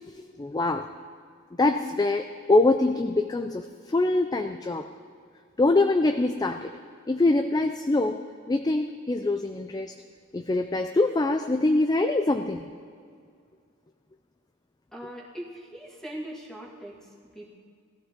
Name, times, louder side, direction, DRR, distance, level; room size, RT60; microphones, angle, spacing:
voice 1, 0.1-0.9 1.5-4.9 5.6-6.8 7.1-9.9 10.3-12.6, left 2 dB, 20° left, 7 dB, 0.4 m, -24 dB
voice 2, 14.9-17.6, right 1 dB, ahead, -3 dB, 1.9 m, -41 dB
19.5 x 14.0 x 3.7 m, 2.2 s
head